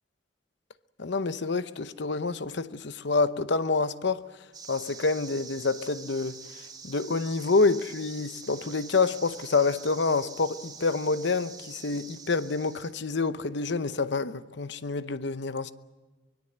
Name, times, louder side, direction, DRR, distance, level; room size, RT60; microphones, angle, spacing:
voice 1, 1.0-4.3 4.7-15.7, left 3 dB, 65° left, 0.8 m, -27 dB
sound 1, 4.5-12.9, right 5 dB, 20° right, 2.3 m, -46 dB
24.0 x 21.5 x 8.0 m
head